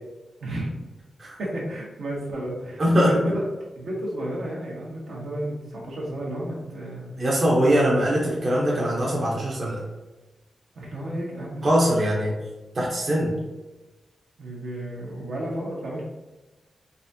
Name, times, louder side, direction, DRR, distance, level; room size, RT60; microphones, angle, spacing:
voice 1, 0.4-0.7 1.4-3.4 3.7-7.2 10.7-11.7 14.4-16.0, right 1 dB, 80° right, -3 dB, 1.3 m, -32 dB
voice 2, 2.8-3.3 7.2-9.8 11.6-12.3 12.7-13.4, equal, 50° right, -4 dB, 0.9 m, -22 dB
4.0 x 3.5 x 2.8 m, 1.1 s
wide cardioid pair, 95°, 0 cm